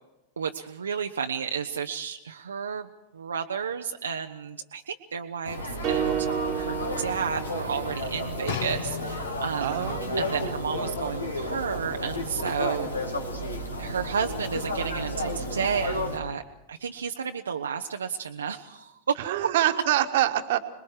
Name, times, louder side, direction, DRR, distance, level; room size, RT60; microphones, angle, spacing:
voice 1, 0.4-2.9 3.1-6.3 6.5-13.1 13.8-16.4 16.7-19.2, right 6 dB, 70° right, 4 dB, 0.7 m, -32 dB
sound 1, 5.4-16.2, left 1 dB, 80° left, 2.5 m, -32 dB
sound 2, 5.8-8.2, right 11 dB, 35° right, 0.8 m, -31 dB
sound 3, 8.5-9.7 10.5-10.6, left 9 dB, 55° left, 1.7 m, -35 dB
voice 2, 9.6-10.3 19.2-20.6, right 13 dB, 55° right, 8 dB, 1.4 m, -25 dB
26.5 x 21.0 x 4.8 m, 0.98 s
figure-of-eight pair, 90°, 0 cm